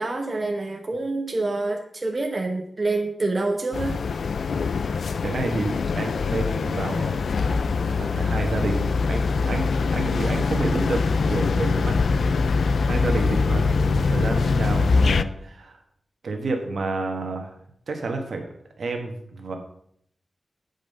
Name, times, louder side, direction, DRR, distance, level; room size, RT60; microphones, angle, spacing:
voice 1, 0.0-4.0, right 2 dB, 30° right, 2 dB, 0.9 m, -27 dB
sound 1, 3.7-15.2, left 4 dB, 70° left, 0.3 m, -23 dB
voice 2, 5.2-7.4 7.9-15.8 16.2-17.5 17.9-18.5 18.8-19.6, right 3 dB, 65° right, 3 dB, 1.5 m, -30 dB
8.5 x 5.3 x 5.5 m, 0.69 s
wide cardioid pair, 165°, 0 cm